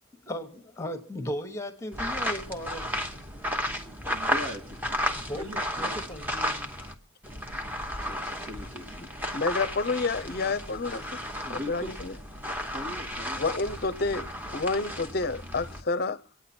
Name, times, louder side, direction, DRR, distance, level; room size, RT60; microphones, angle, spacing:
voice 1, 0.2-2.9 5.1-5.5 5.8-6.7, equal, 15° left, 1.1 m, -36 dB
sound 1, 1.9-6.9 7.2-15.8, equal, 10° right, 1.0 m, -33 dB
voice 2, 4.0-5.9 7.8-9.0 10.9-11.0 11.4-11.9 12.7-13.4, equal, 80° right, 2.8 m, -40 dB
voice 3, 9.3-11.2 11.5-12.1 13.4-16.2, left 3 dB, 45° left, 0.6 m, -29 dB
24.0 x 9.2 x 4.3 m
head